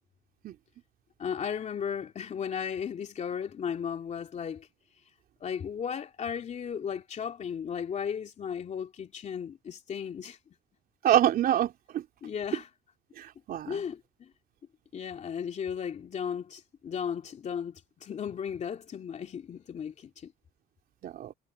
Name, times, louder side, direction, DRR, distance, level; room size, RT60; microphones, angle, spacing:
voice 1, 1.2-4.7 5.4-10.4 12.2-12.7 13.7-14.3 14.9-20.3, left 7 dB, 45° left, 2.9 m, -35 dB
voice 2, 11.0-12.0 13.2-13.8 21.0-21.3, right 11 dB, 60° right, 3.6 m, -26 dB
cardioid pair, 110°, 17 cm